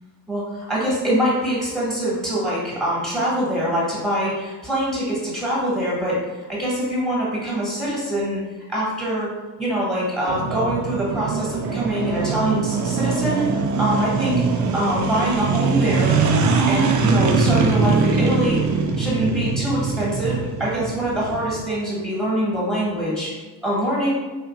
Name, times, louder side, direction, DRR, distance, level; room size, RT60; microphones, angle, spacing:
voice 1, 0.3-6.2 6.5-8.4 8.7-9.3 9.6-14.4 14.7-16.2 16.7-18.7 19.0-23.3 23.6-24.1, right 1 dB, ahead, -6 dB, 1.5 m, -24 dB
sound 1, 10.3-21.6, right 4 dB, 45° right, 0.4 m, -22 dB
2.9 x 2.5 x 2.2 m, 1.3 s
supercardioid pair, 60°, 45 cm